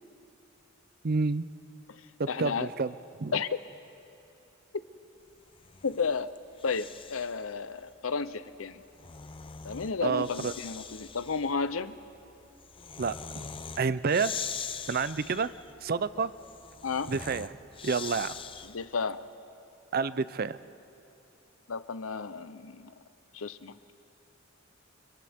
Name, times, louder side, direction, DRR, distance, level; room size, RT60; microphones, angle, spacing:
voice 1, 1.0-1.5 2.2-2.9 3.2-3.3 10.0-10.5 13.0-13.5 13.8-14.4 14.9-15.5 15.8-16.3 17.1-17.5 17.8-18.4 19.9-20.6, right 4 dB, 50° right, 15 dB, 0.5 m, -29 dB
voice 2, 2.3-2.7 3.3-3.5 5.8-6.3 6.6-8.8 9.6-11.9 16.8-17.1 18.7-19.2 21.7-22.9 23.3-23.9, left 5 dB, 85° left, 13 dB, 0.8 m, -32 dB
Breathing, 5.5-7.5 8.7-19.0, left 6 dB, 25° left, 0.6 m, -42 dB
30.0 x 28.5 x 3.6 m, 2.7 s
head